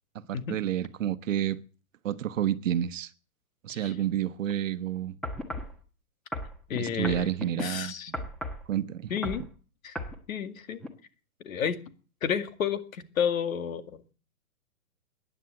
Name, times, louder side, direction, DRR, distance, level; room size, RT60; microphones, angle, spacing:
voice 1, 0.3-1.6 2.0-3.1 3.6-5.2 6.8-8.2 8.7-9.1, right 11 dB, 60° right, 1.1 m, -30 dB
sound 1, 5.2-5.7 6.3-7.7 8.1-8.6 9.1-9.5 9.9-10.2 10.8-10.9, left 1 dB, ahead, 1.2 m, -35 dB
voice 2, 6.7-7.3 7.6-8.1 9.1-9.4 9.8-10.0 10.3-10.8 11.4-11.8 12.2-14.1, left 8 dB, 65° left, 2.2 m, -31 dB
16.0 x 10.5 x 7.8 m
hypercardioid pair, 155°, 44 cm